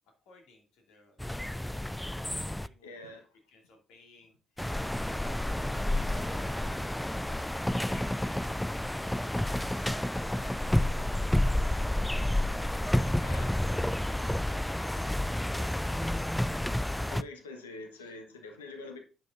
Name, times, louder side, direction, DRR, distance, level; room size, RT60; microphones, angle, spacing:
voice 1, 0.2-3.2 3.5-4.8 5.1-8.5 9.3-13.1 17.9-18.6, left 2 dB, 70° left, 2.4 m, -57 dB
sound 1, 1.2-2.7 4.6-17.2, left 1 dB, 10° left, 0.3 m, -30 dB
voice 2, 2.8-3.3 13.2-13.7 17.1-19.0, left 3 dB, 85° left, 1.0 m, -45 dB
sound 2, 5.6-8.3 8.7-8.8 9.2-9.3 9.6-9.7, left 1 dB, 35° left, 3.0 m, -50 dB
10.5 x 6.5 x 2.6 m
figure-of-eight pair, 40°, 0 cm